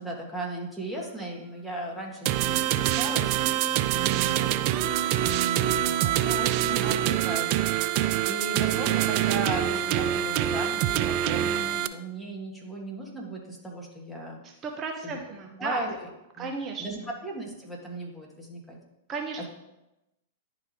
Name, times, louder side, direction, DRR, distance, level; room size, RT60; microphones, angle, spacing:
voice 1, 0.0-4.6 5.2-14.4 15.0-15.2 15.6-16.0 16.4-16.5 16.8-18.8, right 2 dB, 5° left, -3 dB, 1.9 m, -36 dB
sound 1, 2.3-11.9, right 12 dB, 50° right, 0.3 m, -25 dB
voice 2, 14.4-15.8 16.4-17.1 19.1-19.5, right 4 dB, 30° right, 2 dB, 0.9 m, -34 dB
10.5 x 3.8 x 3.4 m, 0.94 s
hypercardioid pair, 105°, 0 cm